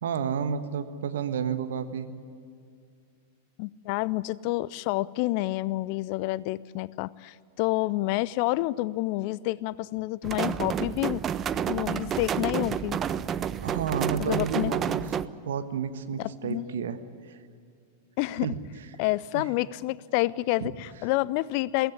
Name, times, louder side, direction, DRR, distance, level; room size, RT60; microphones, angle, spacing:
voice 1, 0.0-2.1 13.6-15.1 15.5-17.4 18.4-18.6 19.3-19.5 20.6-20.7, right 7 dB, 65° right, 10 dB, 1.4 m, -31 dB
voice 2, 3.6-11.2 11.7-13.0 14.2-14.7 16.2-16.7 18.2-18.5 19.0-21.9, left 18 dB, 45° left, 21 dB, 0.5 m, -28 dB
sound 1, 10.2-15.3, right 8 dB, 25° right, 0.6 m, -30 dB
23.0 x 17.0 x 9.8 m, 2.3 s
figure-of-eight pair, 95°, 0 cm